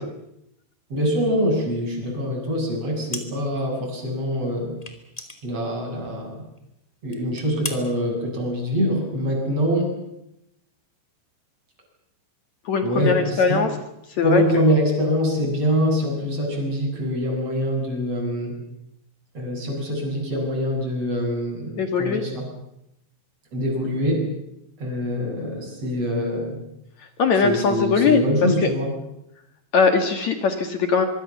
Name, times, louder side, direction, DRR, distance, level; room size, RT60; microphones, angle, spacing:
voice 1, 0.9-4.7 5.4-6.4 7.0-9.9 12.8-13.6 14.2-18.5 19.3-21.7 22.0-22.4 23.5-24.2 24.8-26.6 27.4-28.9, equal, 35° right, 0 dB, 8.4 m, -24 dB
sound 1, 3.1-3.7 3.9-4.0 4.8-6.2 6.6-6.7 7.1-7.8, left 2 dB, 10° left, 2.0 m, -36 dB
voice 2, 12.7-13.7 14.2-14.6 21.8-22.2 27.2-28.2 28.6-28.7 29.7-31.1, left 5 dB, 55° left, 7 dB, 2.1 m, -20 dB
24.5 x 24.0 x 7.2 m, 0.81 s
omnidirectional pair, 5.2 m